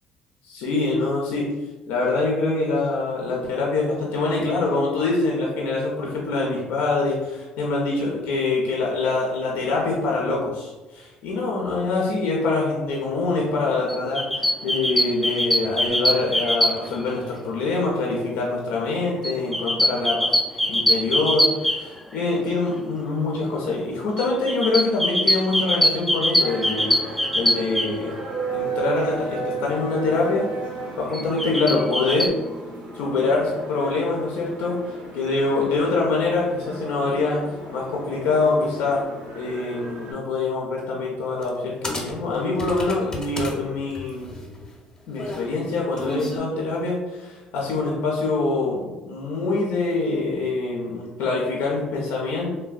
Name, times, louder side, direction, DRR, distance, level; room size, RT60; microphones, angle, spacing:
voice 1, 0.5-1.5 1.9-28.2 28.5-30.5 31.0-32.3 32.9-39.1 39.4-44.3 45.1-52.6, left 3 dB, 75° left, -2 dB, 0.5 m, -25 dB
sound 1, 13.9-17.1 19.2-22.3 24.2-27.9 31.1-32.3, left 1 dB, ahead, 0.3 m, -22 dB
sound 2, 26.4-40.1, right 3 dB, 85° right, 0.8 m, -34 dB
sound 3, 41.4-41.6 41.8-43.6 43.9-46.4, left 1 dB, 20° left, 0.7 m, -33 dB
3.2 x 2.1 x 2.3 m, 1.1 s
supercardioid pair, 65°, 3 cm